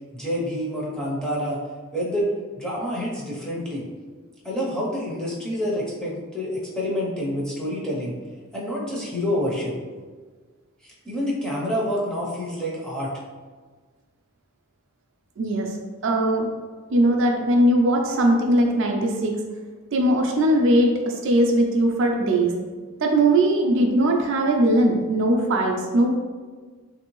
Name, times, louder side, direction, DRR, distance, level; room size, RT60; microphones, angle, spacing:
voice 1, 0.1-1.6 1.9-2.3 2.6-3.8 4.4-8.1 8.5-9.7 11.0-13.1, equal, 5° left, -6 dB, 0.6 m, -27 dB
voice 2, 15.4-15.7 16.0-16.5 16.9-19.3 19.9-22.5 23.0-26.2, right 1 dB, 60° right, 1 dB, 0.4 m, -20 dB
3.3 x 2.6 x 3.0 m, 1.5 s
head